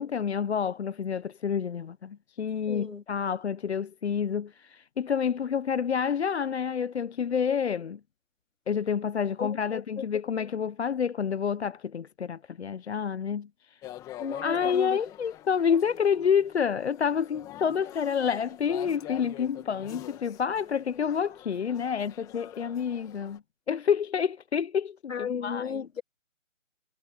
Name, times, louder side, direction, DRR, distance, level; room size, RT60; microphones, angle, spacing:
voice 1, 0.0-8.0 8.7-13.5 14.4-23.4 23.7-25.9, left 7 dB, 55° left, 0.8 m, -28 dB
voice 2, 2.7-3.0 9.4-9.8 10.4-10.5 14.2-15.0 25.1-26.0, left 7 dB, 75° left, 3.7 m, -34 dB
sound 1, 13.8-23.4, left 13 dB, 10° left, 1.6 m, -45 dB
hypercardioid pair, 160°, 40 cm